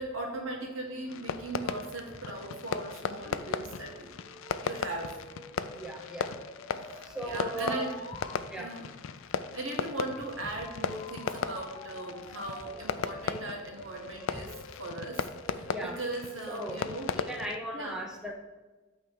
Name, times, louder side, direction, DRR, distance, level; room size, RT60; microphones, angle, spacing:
voice 1, 0.0-4.1 4.6-5.2 6.7-7.9 8.6-8.9 9.5-15.7 16.0-17.1 17.7-17.9, right 2 dB, 80° right, 0 dB, 1.7 m, -38 dB
Fireworks, 1.1-17.6, left 6 dB, 80° left, 0.4 m, -37 dB
sound 1, 3.2-8.4 10.6-16.4, left 1 dB, 30° left, 1.1 m, -49 dB
voice 2, 5.8-6.3 7.1-7.9 8.5-8.7 15.7-16.0 16.5-16.8 17.1-18.3, right 1 dB, 5° right, 0 dB, 0.7 m, -36 dB
8.5 x 3.5 x 6.1 m, 1.2 s
head